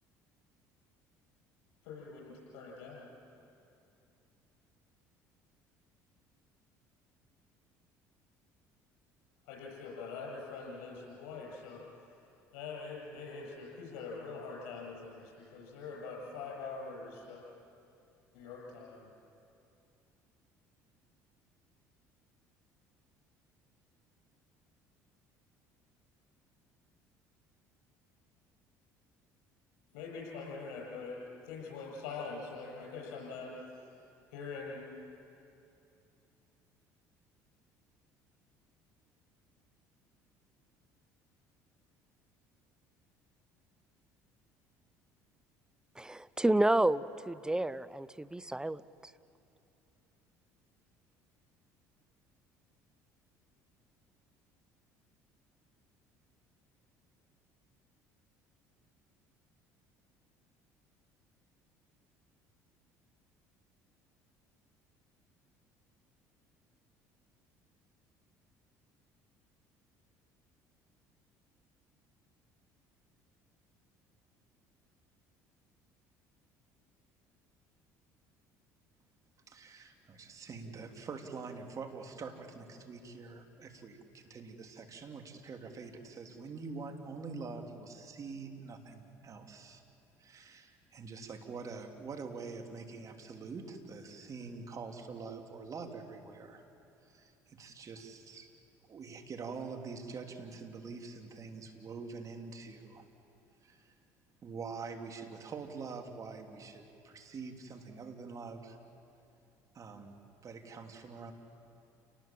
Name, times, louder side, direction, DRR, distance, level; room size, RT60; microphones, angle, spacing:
voice 1, 1.8-3.1 9.5-11.8 12.5-17.4 18.3-19.1 29.9-33.6 34.3-35.0, left 4 dB, 80° left, -2 dB, 7.8 m, -44 dB
voice 2, 46.0-48.8, right 1 dB, 10° right, 17 dB, 0.7 m, -30 dB
voice 3, 79.5-89.8 90.2-96.6 97.0-98.5 98.9-103.0 103.6-103.9 104.4-108.8 109.7-110.2 110.4-111.3, right 4 dB, 40° right, 4 dB, 3.0 m, -45 dB
29.0 x 19.0 x 7.6 m, 2.7 s
hypercardioid pair, 70°, 8 cm